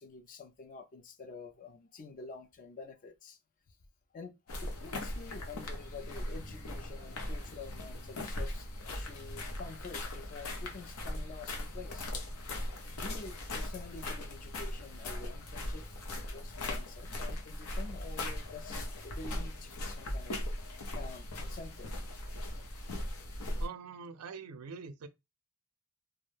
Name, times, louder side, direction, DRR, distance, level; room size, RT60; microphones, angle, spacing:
voice 1, 0.0-3.4 4.1-4.3 4.6-12.1 13.0-20.4 20.9-21.9, left 4 dB, 40° left, 0.4 m, -48 dB
sound 1, 4.5-23.7, left 1 dB, 90° left, 0.7 m, -39 dB
voice 2, 23.6-25.1, right 5 dB, 85° right, 0.4 m, -44 dB
2.3 x 2.1 x 3.1 m
head